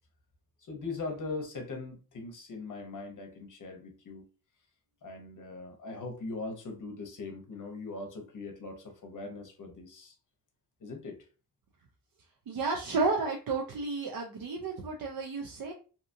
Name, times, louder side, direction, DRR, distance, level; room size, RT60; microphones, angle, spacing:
voice 1, 0.6-4.3 5.0-10.2 10.8-11.2, left 3 dB, 50° left, 3 dB, 0.8 m, -40 dB
voice 2, 12.5-15.7, right 4 dB, 65° right, 0 dB, 0.5 m, -32 dB
2.7 x 2.4 x 2.5 m, 0.36 s
wide cardioid pair, 160°, 38 cm